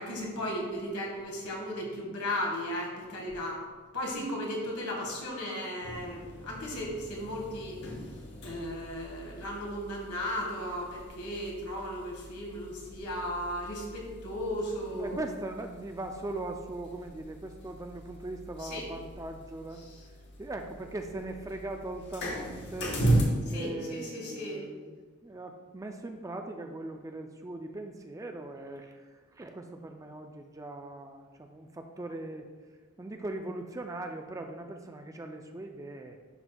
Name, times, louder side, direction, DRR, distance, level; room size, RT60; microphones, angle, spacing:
voice 1, 0.0-3.6 3.9-7.8 8.4-15.2 18.6-18.8 23.5-24.6, equal, 85° left, -1 dB, 1.6 m, -35 dB
sound 1, 5.8-23.2, right 1 dB, 50° left, 1.0 m, -37 dB
voice 2, 14.9-19.9 20.4-23.0 23.5-25.0 25.2-32.5 33.0-36.2, right 2 dB, 15° right, 4 dB, 0.3 m, -40 dB
11.0 x 4.3 x 2.2 m, 1.4 s
head